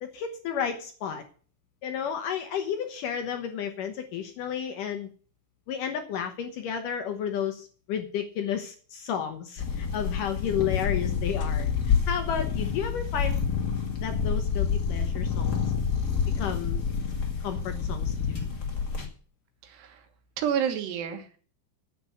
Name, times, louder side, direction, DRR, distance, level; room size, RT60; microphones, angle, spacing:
voice 1, 0.0-1.2 1.8-5.1 5.7-13.5 14.0-15.6 16.4-16.8 17.4-18.5, left 8 dB, 75° left, 6 dB, 2.0 m, -32 dB
sound 1, 9.6-19.1, left 6 dB, 40° left, 1.4 m, -28 dB
voice 2, 19.6-20.0 20.4-21.4, right 8 dB, 75° right, 6 dB, 3.5 m, -29 dB
10.0 x 8.4 x 8.0 m, 0.42 s
omnidirectional pair, 5.1 m